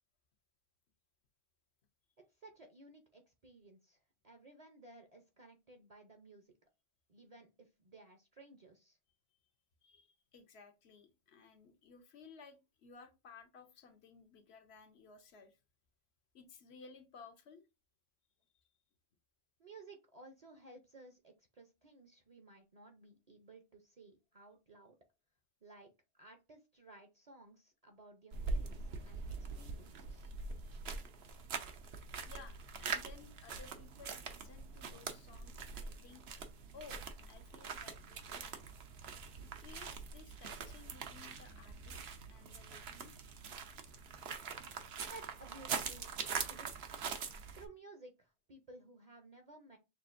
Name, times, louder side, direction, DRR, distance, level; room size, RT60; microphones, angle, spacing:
voice 1, 2.3-6.5 7.1-9.0 19.6-24.9 25.6-30.3 45.1-46.7 47.5-49.8, right 2 dB, 45° right, 5 dB, 0.7 m, -57 dB
voice 2, 9.8-15.6 16.3-17.6 30.2-30.3 32.3-36.2 36.7-38.6 39.4-42.0 42.3-43.2, left 5 dB, 80° left, 7 dB, 1.1 m, -58 dB
sound 1, 28.3-47.7, right 5 dB, 75° right, 1.0 m, -43 dB
6.2 x 2.4 x 2.5 m, 0.26 s
omnidirectional pair, 1.1 m